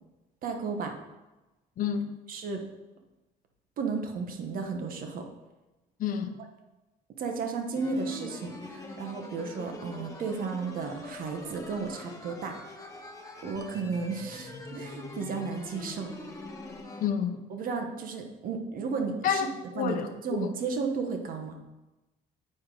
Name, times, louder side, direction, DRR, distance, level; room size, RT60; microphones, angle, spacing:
voice 1, 0.4-1.0 2.3-2.6 3.8-5.3 7.2-12.6 13.4-16.1 17.5-19.5 19.8-21.5, right 4 dB, 55° right, 1.0 m, -33 dB
voice 2, 1.8-2.2 6.0-6.3 17.0-17.4 19.2-19.5 19.7-20.1 20.4-20.5, left 7 dB, 55° left, 0.7 m, -28 dB
sound 1, 7.7-17.1, left 2 dB, 20° left, 1.2 m, -43 dB
8.7 x 4.7 x 3.8 m
cardioid pair, 110°, 17 cm